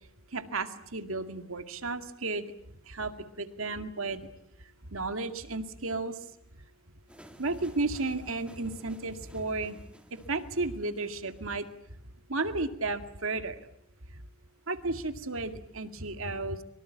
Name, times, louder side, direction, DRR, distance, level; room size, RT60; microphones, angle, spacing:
voice 1, 0.3-2.5 2.9-4.2 4.9-6.2 7.4-9.8 10.3-11.6 12.3-13.6 14.7-16.6, right 3 dB, 70° right, 9 dB, 2.1 m, -33 dB
sound 1, 7.1-11.9, right 1 dB, 5° right, 3.0 m, -55 dB
24.0 x 24.0 x 8.5 m, 0.73 s
head